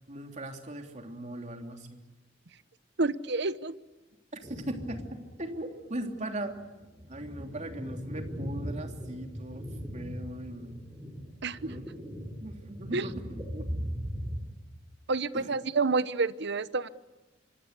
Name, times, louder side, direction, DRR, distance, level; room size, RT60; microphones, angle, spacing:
voice 1, 0.1-2.0 4.4-5.0 5.4-6.5 7.1-9.7 9.9-10.8 11.6-11.9 12.4-13.7 15.3-15.5, right 1 dB, 40° right, 4 dB, 3.2 m, -39 dB
voice 2, 3.0-3.7 11.4-11.7 12.9-13.1 15.1-16.9, right 3 dB, 65° right, 15 dB, 1.0 m, -29 dB
sound 1, 4.4-5.3 5.7-5.8 6.5-14.4, equal, 15° right, 4.4 m, -39 dB
26.0 x 25.0 x 8.3 m, 1.1 s
head